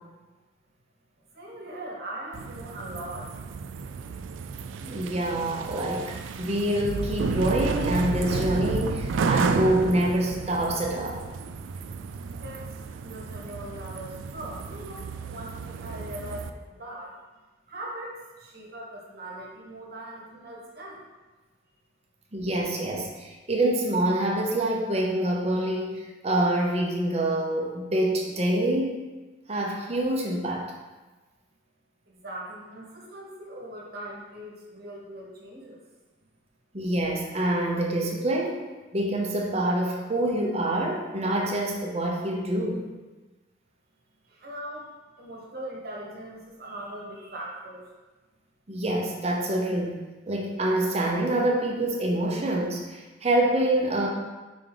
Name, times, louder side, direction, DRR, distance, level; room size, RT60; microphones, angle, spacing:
voice 1, 1.3-3.3 12.4-17.2 17.7-21.0 32.1-35.8 44.3-44.9 45.2-47.9, right 1 dB, 55° right, -3 dB, 1.3 m, -40 dB
sound 1, 2.3-16.5, right 5 dB, 85° right, 0.4 m, -32 dB
voice 2, 4.8-11.2 22.3-29.1 29.5-30.7 36.7-38.6 38.9-42.9 48.7-50.0 50.3-54.1, right 1 dB, 35° right, -1 dB, 0.9 m, -26 dB
5.2 x 3.7 x 4.9 m, 1.2 s
head